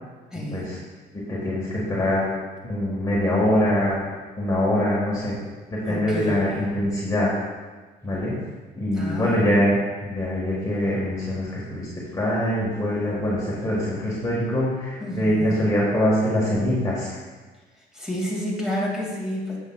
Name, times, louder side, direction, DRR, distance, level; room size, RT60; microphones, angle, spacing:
voice 1, 0.3-0.7 5.9-6.5 8.9-9.5 15.0-15.6 17.9-19.6, left 1 dB, 5° right, -5 dB, 2.4 m, -30 dB
voice 2, 1.3-2.2 2.6-4.0 4.4-5.3 5.7-7.3 8.0-8.3 8.8-9.8 10.0-17.1, left 1 dB, 20° left, -6 dB, 1.8 m, -23 dB
9.5 x 7.4 x 2.4 m, 1.3 s
cardioid pair, 110°, 17 cm